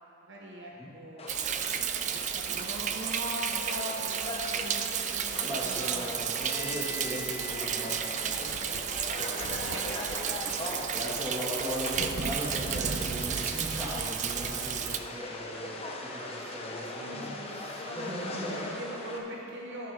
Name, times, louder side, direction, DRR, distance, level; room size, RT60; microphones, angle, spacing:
voice 1, 0.2-1.5 2.3-6.1 9.7-10.7 15.8-16.1 17.0-18.1 18.4-19.9, equal, 60° right, -2 dB, 0.9 m, -42 dB
sound 1, 1.2-19.2, left 2 dB, 30° left, 0.9 m, -40 dB
Thunder, 1.3-15.0, right 8 dB, 35° right, 0.3 m, -33 dB
voice 2, 5.4-10.5 10.9-18.7, equal, 15° right, -7 dB, 2.1 m, -39 dB
sound 2, 8.5-10.2, left 5 dB, 55° left, 0.4 m, -46 dB
13.5 x 11.5 x 2.9 m, 3.0 s
head